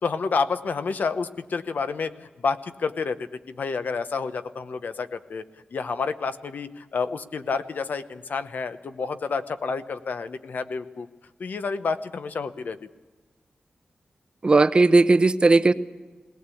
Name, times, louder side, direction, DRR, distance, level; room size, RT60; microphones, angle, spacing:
voice 1, 0.0-5.4 5.7-11.1 11.4-12.9, left 5 dB, 70° left, 11 dB, 0.9 m, -29 dB
voice 2, 14.4-15.7, right 3 dB, 30° right, 13 dB, 0.6 m, -17 dB
20.0 x 18.0 x 8.4 m, 1.3 s
wide cardioid pair, 165°, 3 cm